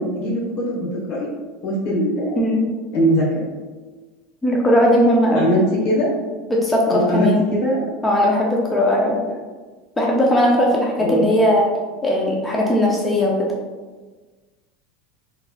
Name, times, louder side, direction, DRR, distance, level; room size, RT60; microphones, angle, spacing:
voice 1, 0.0-1.3 1.6-2.4 2.9-3.4 5.3-5.6 5.8-6.1 6.9-7.9 11.0-11.2, equal, 60° left, -5 dB, 1.2 m, -21 dB
voice 2, 2.4-2.7 4.4-5.5 6.5-7.5 8.0-9.2 10.0-11.7 12.0-13.5, left 1 dB, 10° left, -3 dB, 0.5 m, -18 dB
4.1 x 3.1 x 2.3 m, 1.3 s
supercardioid pair, 140°, 0 cm